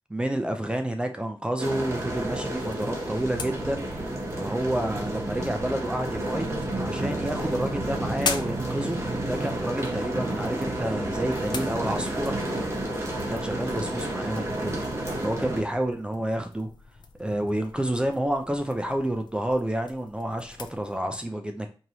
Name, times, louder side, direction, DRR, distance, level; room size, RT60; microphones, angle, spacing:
voice 1, 0.1-3.9 4.4-6.5 6.8-12.3 13.3-14.8 15.2-16.7 17.2-21.7, right 1 dB, 10° right, 0.4 m, -29 dB
sound 1, 1.6-15.6, right 1 dB, 30° right, 1.0 m, -31 dB
sound 2, 2.2-21.0, left 5 dB, 55° left, 0.5 m, -42 dB
4.5 x 2.9 x 2.7 m
wide cardioid pair, 150°, 9 cm